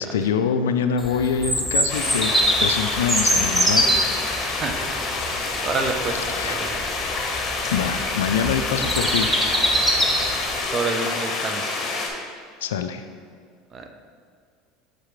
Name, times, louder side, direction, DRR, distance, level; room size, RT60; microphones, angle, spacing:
voice 1, 0.0-2.3 2.6-3.9 6.1-6.6 7.7-9.3 12.6-13.1, left 7 dB, 90° left, 8 dB, 0.3 m, -24 dB
Bird vocalization bird call bird song, 1.0-10.6, equal, 5° right, 0.9 m, -24 dB
sound 1, 1.9-12.1, left 3 dB, 45° left, 1.1 m, -28 dB
voice 2, 4.4-5.4 5.6-6.7 10.7-11.8 13.7-13.9, right 3 dB, 35° right, 5 dB, 0.7 m, -29 dB
6.5 x 4.9 x 3.1 m, 2.1 s
hypercardioid pair, 90°, 0 cm